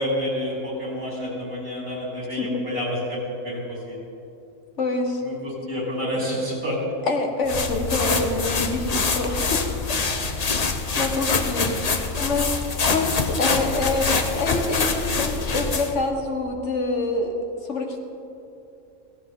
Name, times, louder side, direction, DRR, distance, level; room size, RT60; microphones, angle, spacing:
voice 1, 0.0-4.0 5.2-6.8, equal, 80° right, -5 dB, 4.8 m, -29 dB
voice 2, 2.3-2.6 4.8-5.2 7.0-10.0 10.9-12.6 12.9-17.3 17.7-18.0, left 2 dB, 65° left, 3 dB, 1.7 m, -26 dB
sound 1, 7.5-16.0, left 4 dB, 35° left, 0.8 m, -25 dB
16.5 x 16.0 x 3.8 m, 2.7 s
omnidirectional pair, 1.4 m